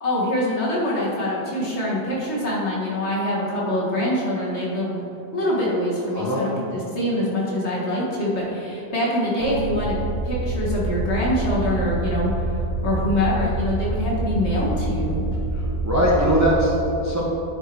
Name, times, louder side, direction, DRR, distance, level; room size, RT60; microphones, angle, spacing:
voice 1, 0.0-5.0 5.3-6.6 6.9-10.0 10.2-15.2, left 1 dB, 40° left, -5 dB, 1.8 m, -24 dB
voice 2, 6.1-6.4 15.5-17.3, equal, 20° right, -5 dB, 0.4 m, -21 dB
sound 1, 9.4-16.5, right 2 dB, 50° right, 1.5 m, -26 dB
10.0 x 4.6 x 4.7 m, 2.9 s
omnidirectional pair, 2.0 m